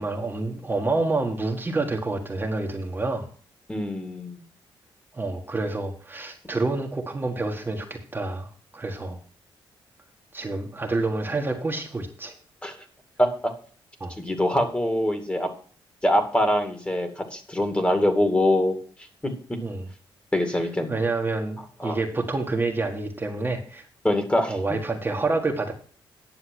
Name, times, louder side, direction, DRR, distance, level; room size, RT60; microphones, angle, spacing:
voice 1, 0.0-3.3 5.1-9.2 10.3-12.3 14.0-14.1 19.6-19.9 20.9-23.8 24.5-25.7, right 3 dB, 20° right, 1 dB, 1.7 m, -28 dB
voice 2, 3.7-4.4 12.6-12.8 13.2-13.5 14.2-15.5 16.0-18.8 20.3-21.0 21.8-22.0 24.0-24.6, left 1 dB, 15° left, 6 dB, 2.3 m, -24 dB
10.0 x 7.0 x 6.3 m, 0.43 s
cardioid pair, 100°, 9 cm